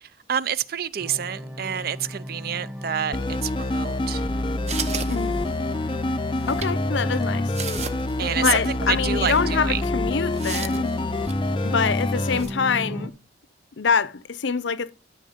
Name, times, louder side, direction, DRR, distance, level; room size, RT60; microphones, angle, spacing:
voice 1, 0.0-4.3 8.2-9.8 11.6-11.7, right 8 dB, 50° right, 0.5 m, -28 dB
sound 1, 1.0-13.1, left 1 dB, 10° right, 1.5 m, -35 dB
sound 2, 3.1-12.4, left 2 dB, 25° left, 0.5 m, -26 dB
sound 3, 4.7-5.7 6.4-6.7 7.2-7.3 7.5-8.2 8.5-8.6 9.2-9.4 10.3-11.4 12.3-12.5, right 6 dB, 35° right, 0.9 m, -34 dB
voice 2, 5.1-5.4 6.5-7.6 8.4-10.9 11.6-13.1 13.8-14.9, left 5 dB, 75° left, 0.6 m, -25 dB
12.5 x 6.4 x 5.1 m
head